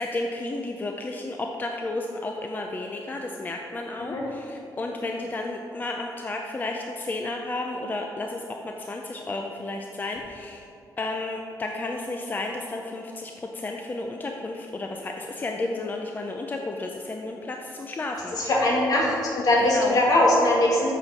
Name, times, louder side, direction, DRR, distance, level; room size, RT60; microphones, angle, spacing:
voice 1, 0.0-10.7 11.0-18.5 19.6-20.0, left 2 dB, 25° left, 2 dB, 0.5 m, -32 dB
voice 2, 18.4-20.9, left 1 dB, 60° left, -3 dB, 2.2 m, -21 dB
7.1 x 6.6 x 5.9 m, 2.7 s
cardioid pair, 125°, 7 cm